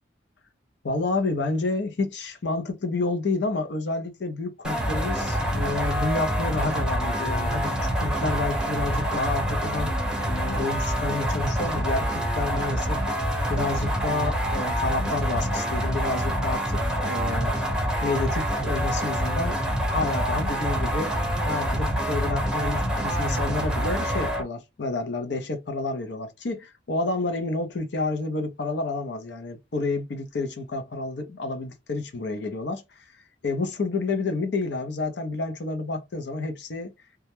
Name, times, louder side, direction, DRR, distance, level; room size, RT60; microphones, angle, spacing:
voice 1, 0.8-9.9 10.2-13.0 13.5-17.5 18.0-19.6 19.9-21.2 21.5-32.8 33.4-36.9, left 3 dB, 60° left, 0.6 m, -29 dB
sound 1, 4.6-24.4, equal, 5° right, 0.8 m, -26 dB
2.3 x 2.1 x 2.9 m
head